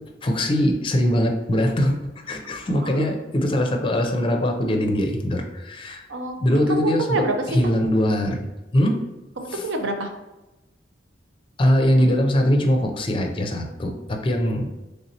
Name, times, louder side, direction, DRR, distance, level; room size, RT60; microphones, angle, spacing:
voice 1, 0.2-2.0 2.3-6.1 6.4-7.0 7.5-8.4 8.7-9.0 9.5-9.6 11.6-14.7, equal, 30° left, 3 dB, 0.5 m, -21 dB
voice 2, 2.7-3.1 5.9-6.4 6.7-7.3 9.4-10.1, right 2 dB, 80° right, 4 dB, 0.6 m, -27 dB
3.4 x 2.8 x 4.0 m, 1.0 s
head